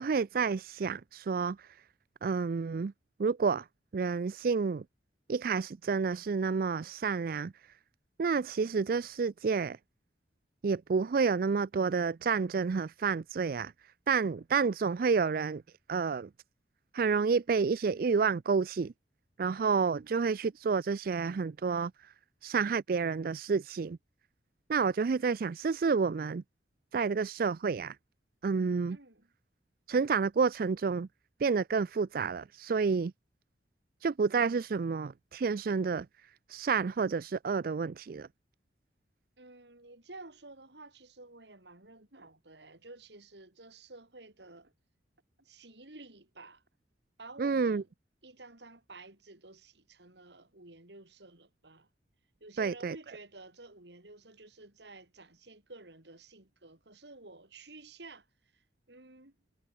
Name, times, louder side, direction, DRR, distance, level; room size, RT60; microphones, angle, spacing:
voice 1, 0.0-1.7 2.2-2.9 3.2-3.7 3.9-4.8 5.3-7.5 8.2-9.8 10.6-13.7 14.1-15.6 15.9-16.3 16.9-18.9 19.4-22.1 22.4-24.0 24.7-26.4 26.9-28.0 28.4-29.0 29.9-31.1 31.4-33.1 34.0-36.1 36.5-38.3 47.4-47.8 52.6-53.0, right 5 dB, 50° right, 0.4 m, -29 dB
voice 2, 28.9-29.3 39.4-44.7 45.4-46.6 47.2-47.9 48.2-51.9 52.4-58.3 58.5-58.6 58.9-59.4, right 2 dB, 70° right, 3.7 m, -52 dB
head